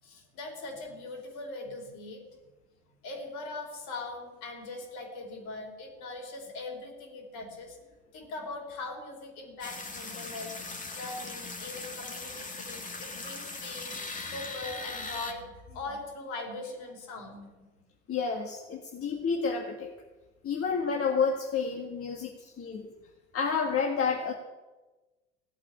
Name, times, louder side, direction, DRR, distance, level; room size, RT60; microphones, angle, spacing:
voice 1, 0.0-2.5 3.0-7.8 8.1-10.6 10.9-14.0 14.3-17.8, left 2 dB, 60° left, 1 dB, 5.0 m, -41 dB
sound 1, 9.6-15.3, left 3 dB, 20° left, 2.3 m, -39 dB
voice 2, 18.1-19.9 20.4-22.9 23.3-24.3, left 5 dB, 40° left, 1 dB, 1.9 m, -30 dB
17.0 x 8.6 x 9.8 m, 1.2 s
figure-of-eight pair, 60°, 36 cm